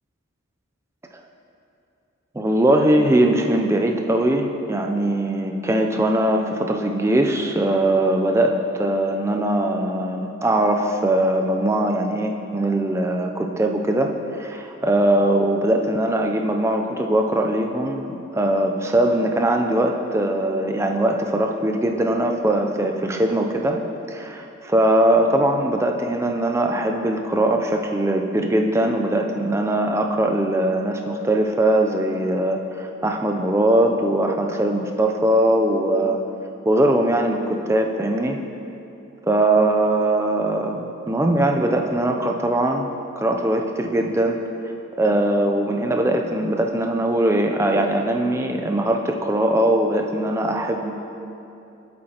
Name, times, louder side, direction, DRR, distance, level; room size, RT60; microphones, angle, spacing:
voice 1, 2.3-23.8 24.1-36.2 36.7-38.4 39.3-42.9 43.2-44.4 45.0-51.0, right 1 dB, 15° right, 3 dB, 0.4 m, -21 dB
8.5 x 7.5 x 2.9 m, 2.8 s
head